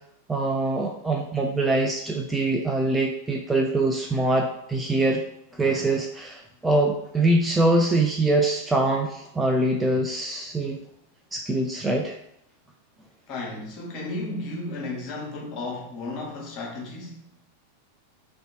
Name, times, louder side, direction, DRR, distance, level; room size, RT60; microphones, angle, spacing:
voice 1, 0.3-5.2 5.5-10.8 11.3-12.1, right 2 dB, 10° right, 0 dB, 0.3 m, -23 dB
voice 2, 13.3-17.2, left 2 dB, 35° left, -2 dB, 1.0 m, -34 dB
3.1 x 2.7 x 2.9 m, 0.73 s
figure-of-eight pair, 90°, 0 cm